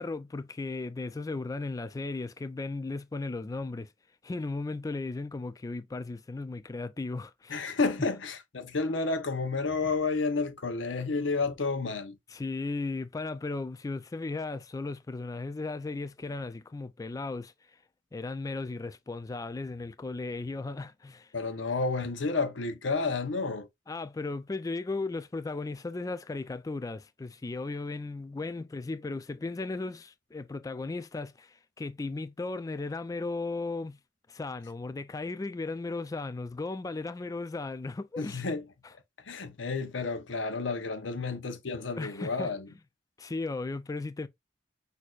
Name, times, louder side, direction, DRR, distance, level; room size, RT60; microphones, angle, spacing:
voice 1, 0.0-3.9 4.2-7.7 12.3-17.5 18.1-21.3 23.9-34.0 34.3-38.4 41.2-41.3 42.0-42.5 43.2-44.3, left 3 dB, 20° left, 0.3 m, -36 dB
voice 2, 7.5-12.2 21.3-23.7 38.2-38.7 39.3-42.7, left 3 dB, 85° left, 0.8 m, -31 dB
6.2 x 2.7 x 2.4 m
head